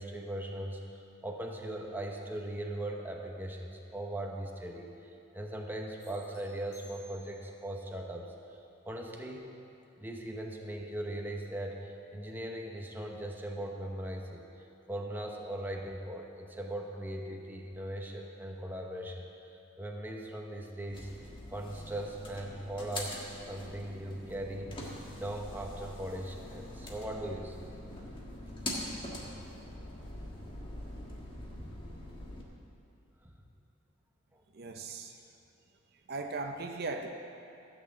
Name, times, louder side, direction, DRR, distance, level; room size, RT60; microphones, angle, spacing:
voice 1, 0.0-8.3 8.8-9.5 10.0-14.4 14.9-19.3 19.8-21.1 21.5-24.7 25.2-27.6 33.2-33.3 34.3-34.4, right 1 dB, 10° right, 1 dB, 0.9 m, -39 dB
sound 1, 6.0-7.6, left 1 dB, 50° left, 3.0 m, -58 dB
sound 2, 20.9-32.4, left 1 dB, 25° left, 1.5 m, -43 dB
voice 2, 34.5-35.2 36.1-37.1, right 3 dB, 50° right, 4 dB, 0.6 m, -38 dB
14.0 x 6.3 x 7.7 m, 2.7 s
head